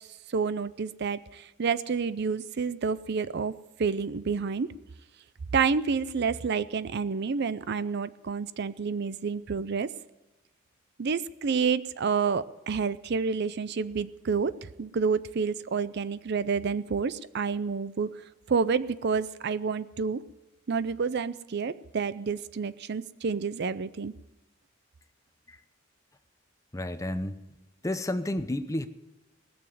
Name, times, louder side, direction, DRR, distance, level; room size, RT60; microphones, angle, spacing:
voice 1, 0.3-3.5 3.8-4.7 5.5-9.9 11.0-14.5 14.8-18.1 18.5-20.2 20.7-24.1, right 5 dB, 55° right, 16 dB, 0.5 m, -29 dB
voice 2, 26.7-27.4 27.8-28.9, left 1 dB, 15° left, 10 dB, 0.7 m, -31 dB
19.0 x 7.0 x 9.4 m, 1.0 s
head